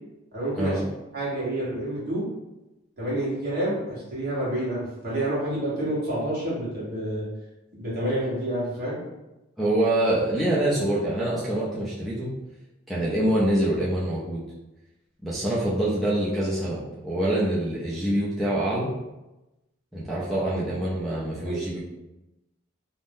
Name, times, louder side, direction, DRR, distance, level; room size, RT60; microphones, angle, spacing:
voice 1, 0.3-0.8 1.1-2.2 3.0-7.2 7.8-9.0 21.5-21.6, right 1 dB, 50° right, -8 dB, 1.2 m, -28 dB
voice 2, 9.6-12.3 12.9-14.4 15.2-18.9 19.9-21.8, right 1 dB, ahead, -10 dB, 0.4 m, -25 dB
2.6 x 2.0 x 3.5 m, 1.0 s
head